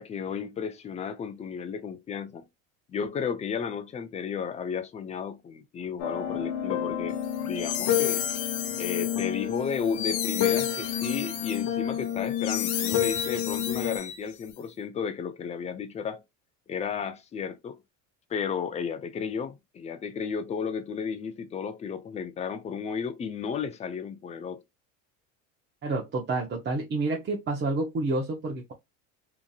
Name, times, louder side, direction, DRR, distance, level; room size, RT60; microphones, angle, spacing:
voice 1, 0.0-2.4 2.9-8.2 8.8-16.2 16.7-17.8 18.3-24.6, left 6 dB, 15° left, 0.3 m, -33 dB
sound 1, 6.0-14.0, left 10 dB, 50° left, 0.9 m, -30 dB
sound 2, 7.2-14.5, left 10 dB, 90° left, 0.7 m, -34 dB
voice 2, 25.8-28.7, right 2 dB, 25° right, 0.7 m, -29 dB
2.9 x 2.5 x 2.3 m
supercardioid pair, 95°, 43 cm